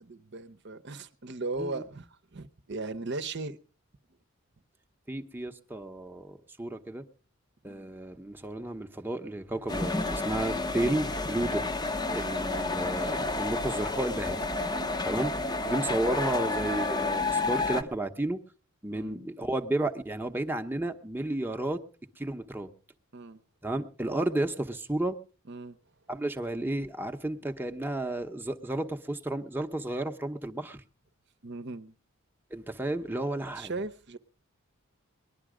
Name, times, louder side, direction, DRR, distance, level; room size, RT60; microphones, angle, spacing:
voice 1, 0.0-3.6 7.6-7.9 14.8-15.0 18.9-19.2 23.1-23.4 25.5-25.8 31.4-31.9 33.6-34.2, right 3 dB, 55° right, 0.8 m, -38 dB
voice 2, 5.1-7.0 7.6-11.7 12.1-14.4 15.0-15.3 15.6-18.4 18.8-21.8 22.2-22.7 23.6-25.2 26.1-30.8 32.5-33.7, right 1 dB, 10° right, 0.8 m, -32 dB
sound 1, 9.7-17.8, left 3 dB, 20° left, 0.7 m, -30 dB
20.0 x 11.5 x 4.9 m
head